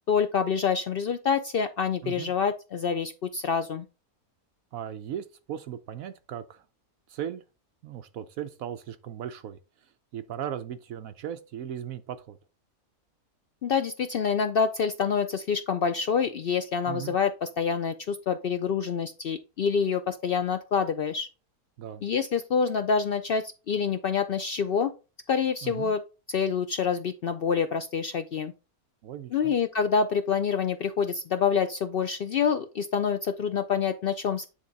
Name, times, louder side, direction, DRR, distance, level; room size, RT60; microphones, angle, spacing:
voice 1, 0.1-3.9 13.6-21.3 22.0-24.9 25.3-26.0 26.3-28.5 29.3-34.5, left 6 dB, 80° left, 0.5 m, -27 dB
voice 2, 2.0-2.3 4.7-6.6 7.1-7.4 7.8-12.4 16.9-17.2 21.8-22.0 25.6-25.9 29.0-29.5, right 10 dB, 70° right, 1.0 m, -37 dB
9.2 x 3.7 x 4.0 m
omnidirectional pair, 1.6 m